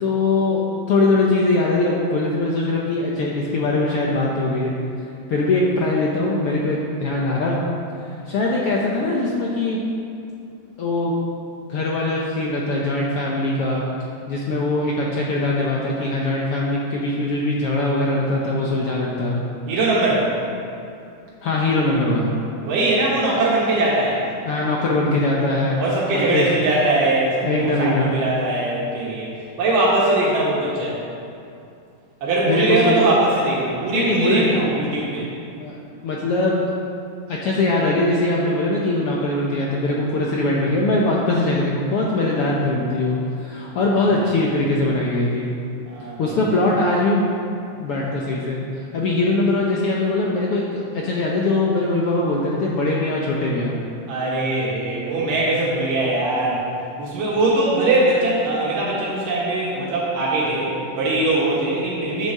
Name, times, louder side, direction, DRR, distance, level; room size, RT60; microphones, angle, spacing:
voice 1, 0.0-0.6 0.9-4.7 5.3-7.6 8.3-9.8 10.8-11.1 11.7-13.8 14.3-19.4 21.4-22.3 24.5-25.8 26.1-26.5 27.4-28.1 32.4-32.9 33.9-34.8 35.2-35.8 36.0-36.7 37.3-45.5 46.2-47.2 47.8-48.6 48.9-53.7, left 2 dB, 70° left, -3 dB, 1.4 m, -21 dB
voice 2, 19.7-20.3 22.6-24.2 25.8-27.7 28.0-29.3 29.6-31.0 32.2-35.3 44.0-44.3 45.9-46.4 54.1-56.6 57.0-62.3, right 2 dB, 85° right, -7 dB, 3.3 m, -21 dB
9.6 x 7.1 x 6.6 m, 2.6 s
omnidirectional pair, 3.8 m